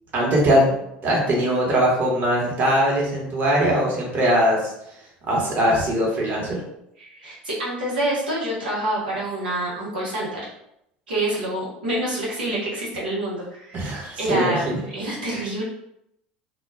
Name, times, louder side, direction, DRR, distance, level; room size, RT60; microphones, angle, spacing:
voice 1, 0.1-0.7 1.0-4.7 5.3-6.6 13.7-14.8, equal, 40° right, -3 dB, 1.1 m, -21 dB
voice 2, 7.0-10.4 11.1-13.9 14.2-14.7 14.9-15.6, right 1 dB, 85° right, -6 dB, 0.8 m, -27 dB
2.2 x 2.1 x 3.3 m, 0.79 s
hypercardioid pair, 80°, 5 cm